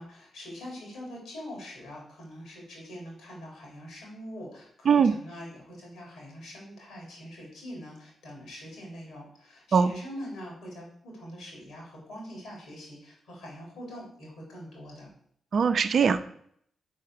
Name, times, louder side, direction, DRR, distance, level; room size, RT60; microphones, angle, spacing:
voice 1, 0.0-15.1, equal, 80° left, -2 dB, 4.2 m, -43 dB
voice 2, 15.5-16.2, right 6 dB, 60° right, 10 dB, 0.6 m, -21 dB
6.4 x 5.6 x 6.6 m, 0.66 s
hypercardioid pair, 40°, 0 cm